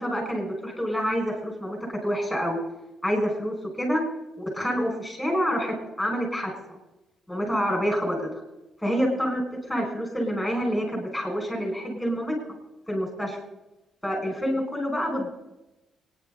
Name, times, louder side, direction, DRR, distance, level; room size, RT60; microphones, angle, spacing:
voice 1, 0.0-2.6 3.0-4.0 4.4-6.5 7.3-8.4 8.8-9.4 9.7-12.4 12.9-13.4 14.0-15.3, equal, 5° left, 1 dB, 6.0 m, -27 dB
27.5 x 10.5 x 4.1 m, 0.97 s
cardioid pair, 90°, 0 cm